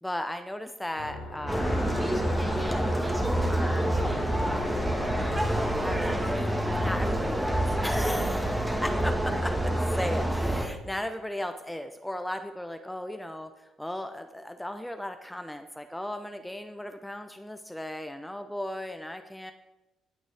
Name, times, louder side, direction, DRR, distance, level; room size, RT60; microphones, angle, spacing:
voice 1, 0.0-1.8 2.5-3.9 5.8-19.5, left 1 dB, 5° left, 8 dB, 0.7 m, -36 dB
sound 1, 0.9-6.3, left 2 dB, 90° left, 2.9 m, -39 dB
sound 2, 1.5-10.7, right 1 dB, 10° right, 1.6 m, -27 dB
19.0 x 6.3 x 3.4 m, 1.0 s
hypercardioid pair, 50°, 0 cm